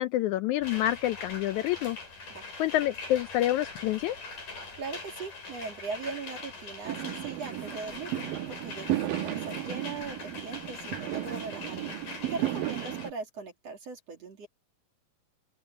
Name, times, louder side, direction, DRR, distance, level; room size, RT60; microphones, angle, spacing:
voice 1, 0.0-2.0 2.6-4.2, left 14 dB, 85° left, 1.7 m, -27 dB
sound 1, 0.6-13.1, left 3 dB, 65° left, 8.7 m, -42 dB
voice 2, 4.8-8.1 8.5-14.5, right 4 dB, 50° right, 3.4 m, -40 dB
Fireworks, 6.9-13.1, right 14 dB, 80° right, 2.7 m, -34 dB
open air
omnidirectional pair, 4.0 m